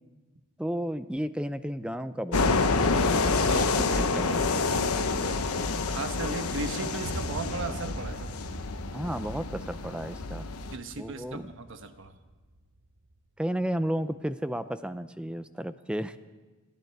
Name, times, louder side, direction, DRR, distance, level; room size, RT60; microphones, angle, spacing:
voice 1, 0.6-4.4 5.6-6.0 8.9-10.5 11.0-11.5 13.4-16.2, equal, 5° right, 12 dB, 0.5 m, -33 dB
sound 1, 2.3-10.8, left 3 dB, 85° left, 1.0 m, -28 dB
voice 2, 3.5-5.4 5.9-8.3 10.7-12.1, right 3 dB, 60° right, 8 dB, 1.1 m, -37 dB
sound 2, 7.0-13.2, right 1 dB, 80° right, 1.0 m, -43 dB
29.0 x 10.5 x 4.6 m, 1.2 s
head